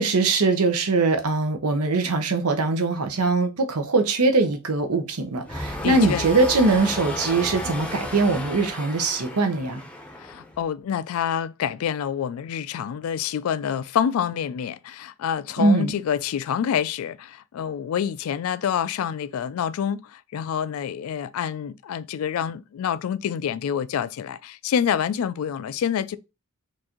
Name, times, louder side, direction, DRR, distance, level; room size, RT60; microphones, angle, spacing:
voice 1, 0.0-9.8 15.6-15.9, right 3 dB, 90° right, 0.8 m, -22 dB
sound 1, 5.4-10.6, left 1 dB, 5° left, 0.6 m, -33 dB
voice 2, 5.8-6.2 10.2-26.2, left 8 dB, 70° left, 0.3 m, -27 dB
4.5 x 2.6 x 2.9 m
head